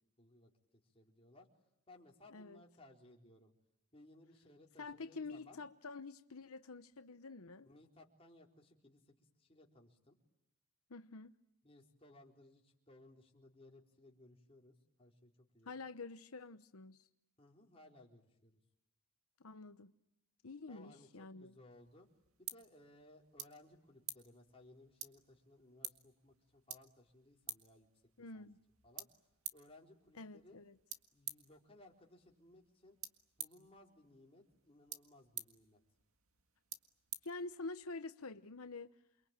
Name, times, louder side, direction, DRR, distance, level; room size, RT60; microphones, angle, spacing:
voice 1, 0.2-0.5 0.8-1.5 1.9-3.5 3.9-5.6 7.6-10.2 11.6-15.8 17.4-18.6 20.7-22.1 22.4-27.9 28.3-28.5 28.8-29.1 29.5-30.6 31.1-33.0 33.4-35.8, left 1 dB, 25° left, 4.1 m, -62 dB
voice 2, 4.8-7.7 10.9-11.3 15.7-17.1 19.4-19.9 20.4-21.5 28.2-28.6 30.1-30.7 37.2-38.9, left 3 dB, 85° left, 1.0 m, -48 dB
sound 1, 21.7-38.0, right 11 dB, 75° right, 1.8 m, -52 dB
29.0 x 23.0 x 9.0 m
head